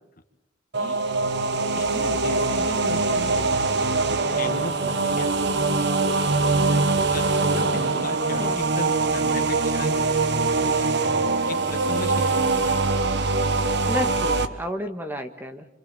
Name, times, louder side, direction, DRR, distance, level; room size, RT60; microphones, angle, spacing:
sound 1, 0.7-14.5, right 3 dB, 60° right, 1.4 m, -23 dB
voice 1, 1.7-3.5 4.3-5.7 6.7-6.8 7.1-9.9 10.5-11.0 11.5-12.8, left 2 dB, 45° left, 6 dB, 2.2 m, -37 dB
voice 2, 13.9-15.7, left 1 dB, 10° right, 6 dB, 1.8 m, -31 dB
28.5 x 26.0 x 7.0 m, 0.91 s
head